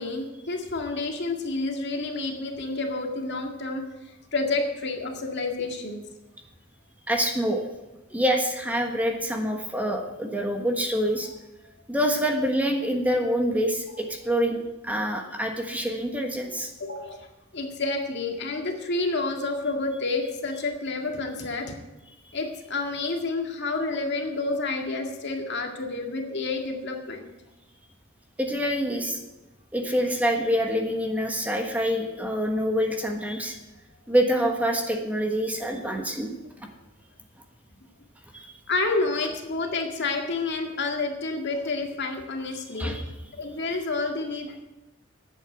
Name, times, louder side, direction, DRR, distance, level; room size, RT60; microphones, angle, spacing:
voice 1, 0.0-3.8 4.3-6.0 16.8-17.3 17.5-21.8 22.3-27.3 38.7-42.9 43.4-44.6, left 3 dB, 55° left, 3 dB, 2.0 m, -29 dB
voice 2, 7.1-7.6 8.1-11.3 11.9-16.7 28.4-29.2 29.7-33.6 34.1-36.3 38.3-38.5 42.8-43.0, equal, 10° right, 2 dB, 1.4 m, -26 dB
11.0 x 8.2 x 8.0 m, 1.0 s
head